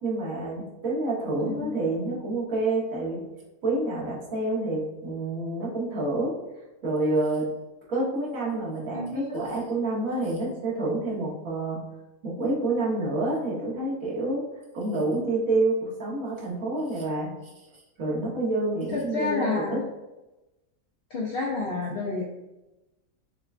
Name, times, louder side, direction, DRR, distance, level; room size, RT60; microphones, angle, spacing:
voice 1, 0.0-3.2 3.6-6.3 6.8-7.5 7.9-11.9 12.2-14.4 14.7-17.5 18.0-19.8, right 2 dB, 75° right, -5 dB, 1.5 m, -28 dB
voice 2, 1.3-1.8 8.9-9.5 18.9-19.8 21.1-22.2, left 3 dB, 70° left, -2 dB, 0.5 m, -30 dB
6.4 x 2.2 x 2.4 m, 1.0 s
omnidirectional pair, 1.5 m